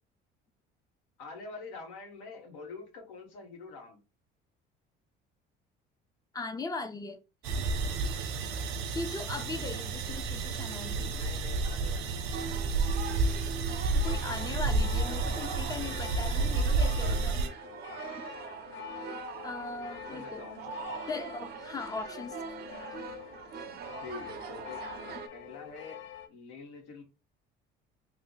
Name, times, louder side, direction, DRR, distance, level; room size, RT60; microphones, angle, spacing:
voice 1, 1.2-4.0 11.1-12.1 18.6-18.8 19.7-21.0 24.0-24.8 25.3-27.0, left 4 dB, 85° left, 1.3 m, -46 dB
voice 2, 6.3-7.2 8.9-11.2 13.7-17.5 19.4-20.4 21.1-22.4, left 3 dB, 20° left, 0.5 m, -39 dB
sound 1, 7.4-17.5, right 3 dB, 85° right, 0.7 m, -30 dB
sound 2, 12.3-25.3, right 6 dB, 50° right, 0.5 m, -42 dB
sound 3, 14.0-26.3, left 12 dB, 65° left, 0.5 m, -46 dB
3.2 x 2.1 x 3.8 m
cardioid pair, 120°, 21 cm